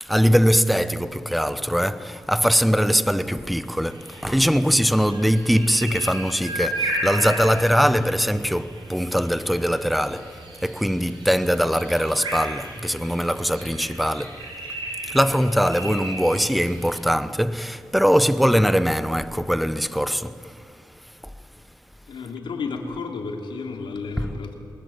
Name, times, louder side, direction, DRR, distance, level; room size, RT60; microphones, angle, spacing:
voice 1, 0.0-14.5 15.0-20.7 21.2-21.3 24.2-24.3, equal, ahead, 0.8 m, -22 dB
sound 1, 3.9-17.0, right 1 dB, 75° right, 7.6 m, -34 dB
voice 2, 22.1-24.6, left 4 dB, 85° left, 2.9 m, -32 dB
22.5 x 20.5 x 8.9 m
cardioid pair, 85°, 8 cm